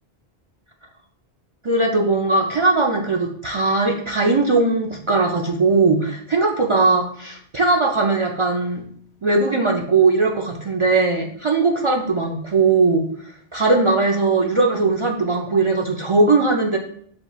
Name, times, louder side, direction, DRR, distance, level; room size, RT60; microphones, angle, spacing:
voice 1, 1.6-8.8 9.2-16.8, right 3 dB, 55° right, -1 dB, 0.3 m, -19 dB
6.7 x 2.9 x 2.4 m, 0.62 s
omnidirectional pair, 1.1 m